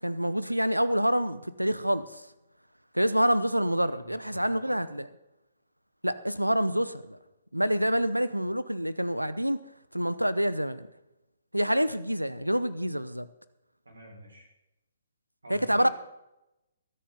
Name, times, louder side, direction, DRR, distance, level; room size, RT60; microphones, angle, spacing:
voice 1, 0.0-2.2 2.9-5.1 6.0-7.2 7.5-9.6 9.9-10.9 11.5-13.3 15.5-15.9, equal, 90° right, 16 dB, 0.9 m, -27 dB
voice 2, 3.7-4.8 13.9-14.5 15.4-15.9, right 2 dB, 70° right, 0 dB, 5.4 m, -48 dB
23.0 x 8.6 x 3.9 m, 0.92 s
figure-of-eight pair, 125°, 0 cm